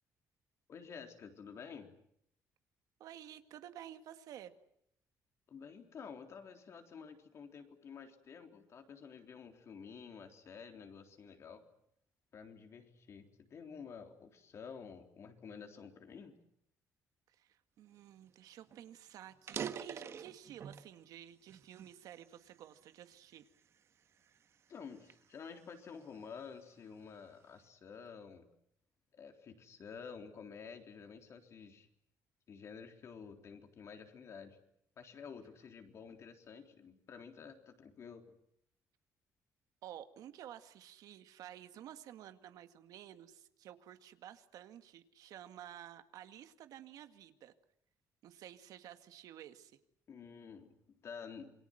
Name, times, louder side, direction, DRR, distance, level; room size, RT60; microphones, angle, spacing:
voice 1, 0.7-1.9 5.5-11.6 12.3-16.4 24.7-28.5 29.1-31.9 32.5-34.6 35.0-38.3 50.1-51.5, left 6 dB, 50° left, 5 dB, 3.7 m, -51 dB
voice 2, 3.0-4.5 17.3-23.5 39.8-47.5 48.2-49.8, right 11 dB, 75° right, 9 dB, 1.9 m, -52 dB
sound 1, 18.3-18.4 18.7-18.8 19.3-20.9 21.5-22.8 23.3-23.6 24.2-26.3, right 8 dB, 45° right, 1.4 m, -45 dB
27.5 x 22.5 x 7.9 m, 0.73 s
cardioid pair, 130°, 6 cm